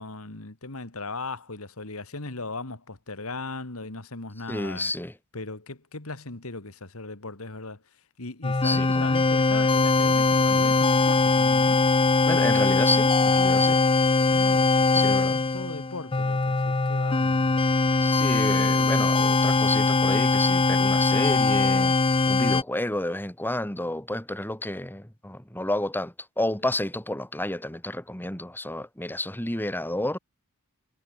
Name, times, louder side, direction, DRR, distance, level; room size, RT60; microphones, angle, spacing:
voice 1, 0.0-4.9 5.3-7.8 8.2-11.8 14.3-17.6, left 3 dB, 70° left, 2.4 m, -38 dB
voice 2, 4.5-5.1 8.6-9.1 10.6-10.7 12.3-13.8 14.9-15.4 18.0-21.9 22.3-30.2, left 1 dB, 10° left, 2.4 m, -30 dB
sound 1, 8.4-22.6, left 3 dB, 25° left, 0.6 m, -21 dB
head